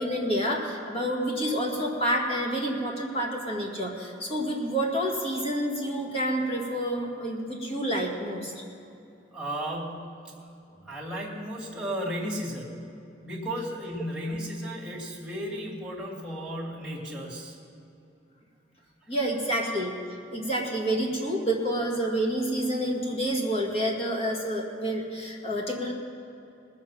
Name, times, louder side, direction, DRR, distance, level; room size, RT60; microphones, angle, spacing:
voice 1, 0.0-8.5 19.1-19.9 20.3-25.9, right 1 dB, 30° left, -1 dB, 2.0 m, -28 dB
voice 2, 9.3-10.1 10.8-12.9 13.2-17.6, equal, 5° right, -5 dB, 2.5 m, -34 dB
20.0 x 7.4 x 5.8 m, 2.8 s
head